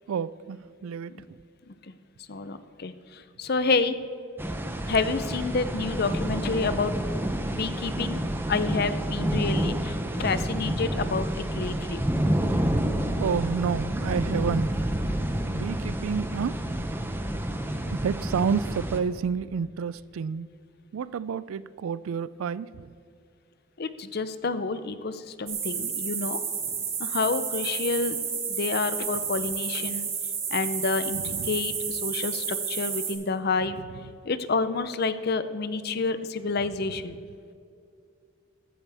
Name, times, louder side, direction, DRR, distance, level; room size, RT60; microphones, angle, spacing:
voice 1, 0.1-1.1 13.2-14.7 15.5-16.8 17.5-17.6 17.9-20.5 20.9-22.9 31.2-31.5, right 6 dB, 80° right, 0.3 m, -30 dB
voice 2, 2.3-3.9 4.9-7.1 7.5-8.2 8.5-12.0 23.8-26.4 27.0-28.2 28.5-30.1 30.5-33.8 34.2-37.1, left 4 dB, 50° left, 0.6 m, -29 dB
sound 1, 4.4-19.0, right 1 dB, 10° right, 0.6 m, -29 dB
sound 2, 25.5-33.1, right 6 dB, 30° right, 2.1 m, -31 dB
15.0 x 12.5 x 3.5 m
head